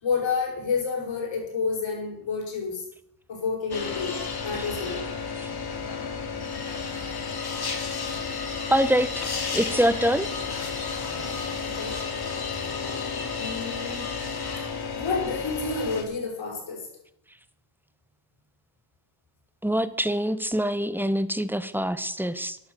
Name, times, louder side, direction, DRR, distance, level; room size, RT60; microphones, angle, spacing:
voice 1, 0.0-2.8 3.3-5.1 11.1-11.3 11.6-12.0 13.4-14.1 15.0-16.9, left 5 dB, 65° left, 0 dB, 7.2 m, -30 dB
sound 1, 3.7-16.0, left 5 dB, 50° left, 3.2 m, -32 dB
voice 2, 8.7-9.1 9.5-10.3 19.6-22.6, equal, 5° right, 13 dB, 1.4 m, -24 dB
13.5 x 11.0 x 7.0 m, 0.71 s
supercardioid pair, 55°, 48 cm